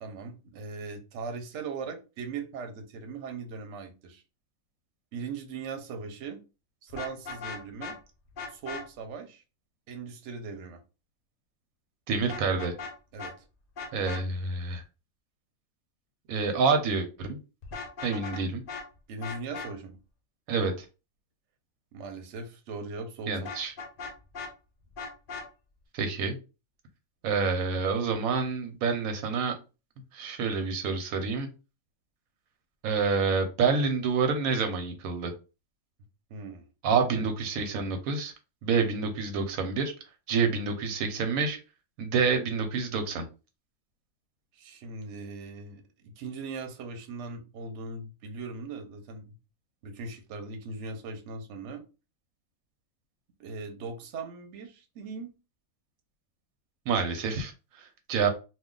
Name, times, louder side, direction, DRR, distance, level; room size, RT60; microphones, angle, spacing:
voice 1, 0.0-4.2 5.1-6.4 6.8-7.9 8.5-9.4 9.9-10.8 13.1-13.5 19.1-20.0 21.9-23.3 36.3-36.7 44.5-49.4 49.8-51.8 53.4-55.3, right 4 dB, 65° right, 0.9 m, -39 dB
Vehicle horn car horn honking, 6.9-8.0 8.4-8.8 12.3-12.9 13.2-13.3 13.8-14.2 17.6-18.4 18.7-18.8 19.2-19.7 23.4-24.5 25.0-25.5, left 4 dB, 55° left, 0.6 m, -38 dB
voice 2, 12.1-12.7 13.9-14.8 16.3-17.4 18.0-18.6 20.5-20.9 23.3-23.7 25.9-26.4 27.2-29.5 30.1-31.5 32.8-35.3 36.8-38.3 38.6-39.9 40.3-41.6 42.0-43.2 56.9-57.5 57.8-58.3, right 5 dB, 85° right, 1.1 m, -27 dB
2.3 x 2.3 x 3.7 m
omnidirectional pair, 1.5 m